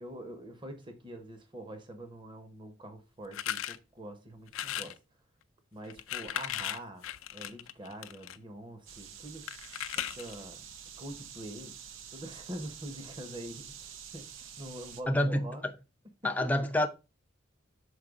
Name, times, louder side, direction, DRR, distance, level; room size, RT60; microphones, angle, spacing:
voice 1, 0.0-5.0 5.7-7.0 7.3-9.5 9.9-10.6 11.0-11.8 12.1-15.6 16.2-16.5, right 1 dB, 25° right, 0.9 m, -45 dB
sound 1, 3.3-3.8 4.5-5.0 5.8-8.4 9.5-10.4, left 11 dB, 85° left, 0.5 m, -37 dB
sound 2, 8.9-15.0, right 8 dB, 80° right, 0.7 m, -48 dB
voice 2, 15.1-15.5 16.2-16.9, left 1 dB, 10° left, 0.5 m, -27 dB
6.5 x 4.4 x 3.6 m
head